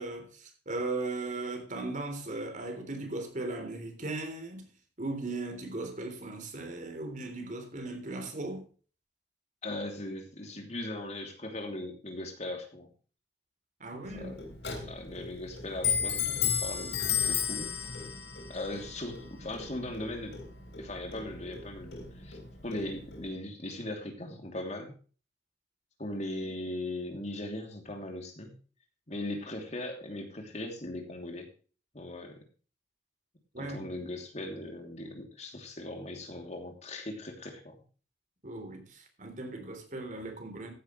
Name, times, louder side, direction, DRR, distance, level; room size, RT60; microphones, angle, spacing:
voice 1, 0.0-4.7 5.0-8.6 13.8-14.4 33.5-33.9 38.4-40.7, right 2 dB, 45° right, 3.5 m, -37 dB
voice 2, 9.6-12.9 13.9-14.5 14.8-17.0 17.3-17.7 18.5-20.3 20.8-24.9 26.0-28.5 29.1-31.5 31.9-32.4 33.6-37.7, left 1 dB, 40° left, 2.9 m, -39 dB
Clock, 14.0-23.3, left 7 dB, 75° left, 3.6 m, -34 dB
14.5 x 10.5 x 3.2 m
head